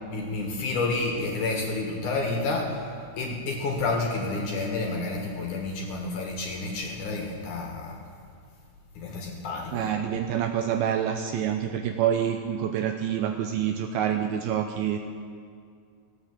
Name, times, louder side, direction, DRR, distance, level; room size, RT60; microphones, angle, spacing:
voice 1, 0.1-2.7 3.2-8.0 9.0-10.0, left 3 dB, 60° left, 0 dB, 2.5 m, -30 dB
voice 2, 9.7-15.0, right 9 dB, 85° right, 4 dB, 2.2 m, -27 dB
16.0 x 8.8 x 7.4 m, 2.3 s
omnidirectional pair, 4.8 m